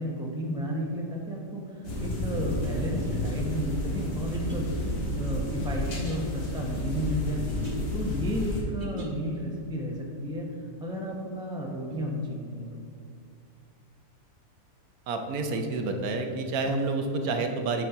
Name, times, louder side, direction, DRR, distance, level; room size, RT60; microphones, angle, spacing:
voice 1, 0.0-1.6 2.0-4.6 5.1-7.4 7.9-10.5 10.8-12.7, equal, 5° right, -1 dB, 0.5 m, -32 dB
sound 1, 1.8-8.6, left 1 dB, 70° left, 2.0 m, -31 dB
sound 2, 4.3-9.4, equal, 35° right, 1.3 m, -45 dB
voice 2, 15.1-17.9, right 3 dB, 70° right, 5 dB, 1.2 m, -29 dB
8.3 x 4.1 x 5.7 m, 2.5 s
omnidirectional pair, 1.7 m